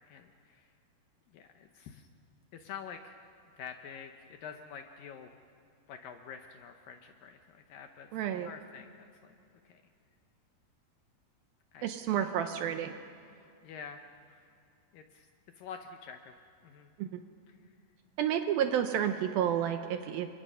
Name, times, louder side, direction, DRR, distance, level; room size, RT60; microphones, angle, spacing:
voice 1, 0.1-0.7 1.3-2.1 2.5-3.2 3.5-5.3 5.9-8.1 8.4-9.3 9.6-9.8 11.7-11.9 12.2-12.3 13.6-14.0 14.3-14.5 14.9-15.3 15.6-16.3 16.6-16.9 17.5-17.6, left 7 dB, 75° left, 6 dB, 2.2 m, -47 dB
voice 2, 8.1-8.5 11.8-12.9 17.0-17.2 18.2-20.3, right 9 dB, 75° right, 7 dB, 2.3 m, -30 dB
29.5 x 24.5 x 5.6 m, 2.6 s
omnidirectional pair, 4.9 m